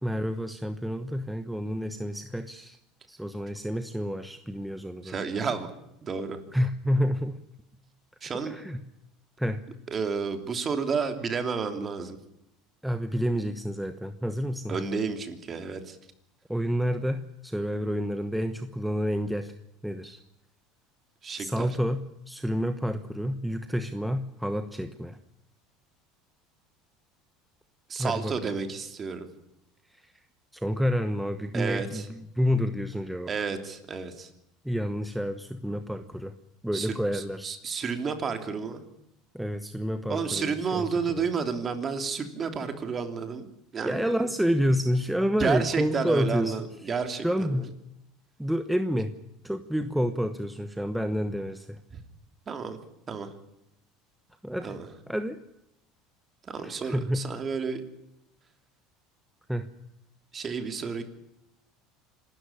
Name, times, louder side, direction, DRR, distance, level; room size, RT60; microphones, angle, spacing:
voice 1, 0.0-2.8 3.1-5.2 6.5-7.4 8.4-8.8 9.4-9.6 12.8-14.8 16.5-19.5 19.8-20.2 21.4-25.2 28.0-28.5 30.0-30.1 30.5-33.3 34.6-36.3 36.6-37.6 39.3-41.2 43.8-46.6 47.2-47.7 48.4-49.1 49.4-51.8 54.4-54.8 55.1-55.4 56.6-57.3 59.5-59.7, equal, ahead, 9 dB, 1.1 m, -29 dB
voice 2, 5.0-5.7 6.0-6.4 8.2-8.5 9.9-12.2 14.7-16.0 21.2-21.7 27.9-29.2 31.5-32.1 33.3-34.3 36.7-38.9 40.1-44.3 45.4-47.7 52.5-52.8 53.1-53.3 54.6-54.9 56.4-57.8 60.3-61.0, right 5 dB, 30° right, 7 dB, 3.1 m, -31 dB
26.5 x 13.0 x 10.0 m, 0.83 s
supercardioid pair, 130°, 0 cm